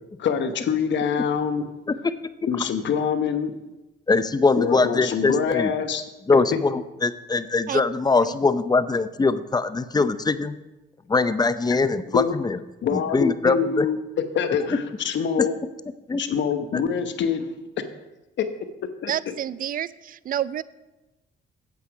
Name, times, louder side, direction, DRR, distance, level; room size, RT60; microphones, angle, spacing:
voice 1, 0.2-1.6 2.5-3.5 4.5-6.0 6.3-6.4 12.1-12.4 12.8-14.0 14.3-15.5 16.2-17.5 17.8-17.9 18.4-18.5 19.0-19.1, left 7 dB, 65° left, 8 dB, 1.0 m, -25 dB
voice 2, 4.1-5.7 6.3-10.6 11.1-12.6 12.9-13.9 16.1-16.2, left 3 dB, 20° left, 13 dB, 0.5 m, -22 dB
voice 3, 19.1-20.6, right 10 dB, 45° right, 19 dB, 0.4 m, -28 dB
8.3 x 8.2 x 4.9 m, 1.0 s
cardioid pair, 90°, 20 cm